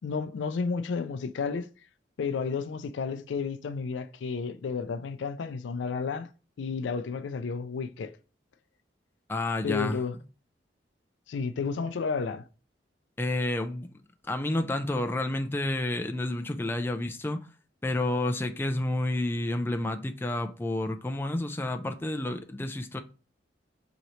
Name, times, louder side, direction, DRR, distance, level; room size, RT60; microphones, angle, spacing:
voice 1, 0.0-1.7 2.2-6.3 6.6-8.1 9.6-10.2 11.3-12.4, left 5 dB, 85° left, 0.4 m, -32 dB
voice 2, 9.3-10.0 13.2-13.9 14.2-17.4 17.8-23.0, left 1 dB, 10° left, 0.3 m, -30 dB
3.9 x 2.9 x 3.1 m
head